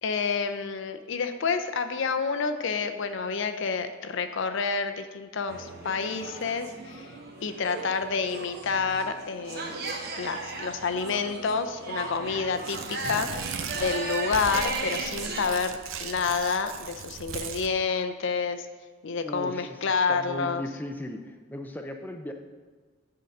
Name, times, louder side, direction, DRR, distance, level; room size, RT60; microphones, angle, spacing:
voice 1, 0.0-7.1 7.4-9.9 10.2-18.7 19.0-20.6, left 5 dB, 60° left, 9 dB, 0.5 m, -29 dB
sound 1, 5.5-15.4, right 3 dB, 50° right, 1.1 m, -37 dB
Tearing, 12.5-17.7, right 6 dB, 70° right, 0.6 m, -37 dB
voice 2, 19.2-19.8 20.1-22.3, left 1 dB, 10° left, 4 dB, 0.5 m, -37 dB
9.1 x 3.8 x 5.3 m, 1.4 s
head